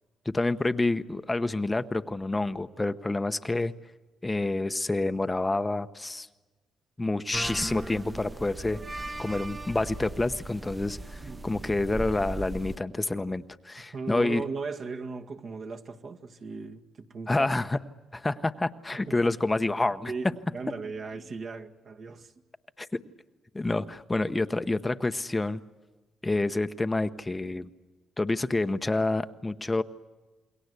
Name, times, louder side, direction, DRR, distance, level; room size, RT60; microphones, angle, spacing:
voice 1, 0.2-3.7 4.2-6.3 7.0-8.8 9.2-14.4 17.3-17.8 18.1-20.1 22.8-22.9 23.5-25.6 26.2-27.7 28.2-29.8, left 2 dB, 15° left, 0.9 m, -28 dB
sound 1, 7.3-12.8, right 2 dB, 20° right, 1.1 m, -38 dB
voice 2, 13.9-17.5 18.9-19.3 20.1-22.3, right 4 dB, 55° right, 2.0 m, -37 dB
28.5 x 22.0 x 8.2 m
cardioid pair, 90°, 0 cm